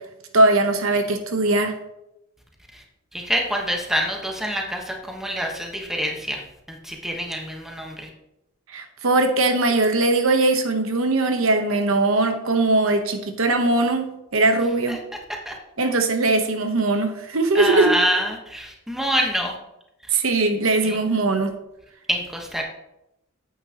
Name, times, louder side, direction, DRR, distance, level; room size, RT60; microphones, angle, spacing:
voice 1, 0.3-1.7 8.7-15.0 15.8-17.9 20.1-21.5, right 2 dB, 70° right, 6 dB, 1.0 m, -20 dB
voice 2, 3.1-6.4 6.7-8.1 14.9-15.0 15.4-15.5 17.5-19.5 20.8-21.0 22.1-22.6, equal, ahead, 1 dB, 1.2 m, -26 dB
9.5 x 8.5 x 2.9 m, 0.86 s
head